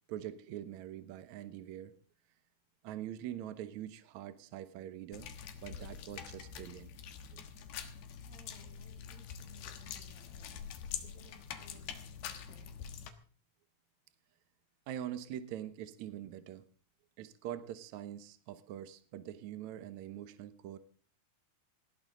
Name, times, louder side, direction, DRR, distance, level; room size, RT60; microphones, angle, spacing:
voice 1, 0.1-1.9 2.8-5.3 5.6-6.9 7.3-7.4 14.9-16.6 17.2-20.8, right 11 dB, 75° right, 11 dB, 1.7 m, -44 dB
sound 1, 5.1-13.1, left 8 dB, 80° left, 3.3 m, -45 dB
voice 2, 8.3-10.7 11.0-12.8, equal, 55° right, -1 dB, 9.3 m, -62 dB
19.5 x 16.0 x 3.8 m, 0.42 s
omnidirectional pair, 4.5 m